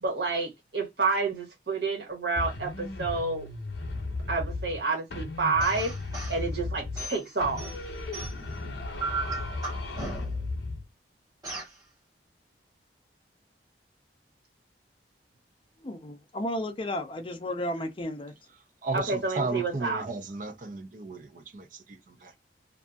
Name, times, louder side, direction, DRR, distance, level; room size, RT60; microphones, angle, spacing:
voice 1, 0.0-3.5 4.3-5.9 6.3-7.7 18.9-20.1, right 3 dB, 65° right, 1.3 m, -29 dB
sound 1, 2.4-4.8 5.1-7.1 7.4-10.8, left 2 dB, 80° left, 0.7 m, -35 dB
sound 2, 5.6-6.4 7.0-8.6 9.0-10.5 11.4-11.8, right 3 dB, 20° right, 1.5 m, -36 dB
voice 2, 15.8-18.3, left 1 dB, 30° left, 0.5 m, -33 dB
voice 3, 18.8-22.3, right 3 dB, 45° right, 0.6 m, -34 dB
2.6 x 2.5 x 2.3 m
head